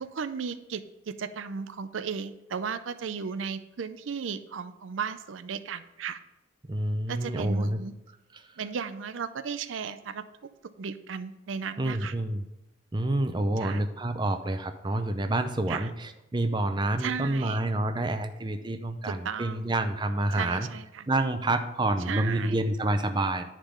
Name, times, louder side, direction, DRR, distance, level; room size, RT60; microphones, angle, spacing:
voice 1, 0.0-6.2 7.1-7.9 8.6-10.2 10.8-12.1 13.6-13.8 15.7-15.9 17.0-17.6 19.0-19.7 20.3-21.1 22.1-22.6, right 6 dB, 80° right, 12 dB, 0.5 m, -35 dB
voice 2, 6.7-7.8 8.3-8.6 11.8-12.4 12.9-20.7 21.1-23.5, right 1 dB, 25° right, 7 dB, 0.5 m, -28 dB
10.0 x 3.8 x 6.7 m, 0.94 s
head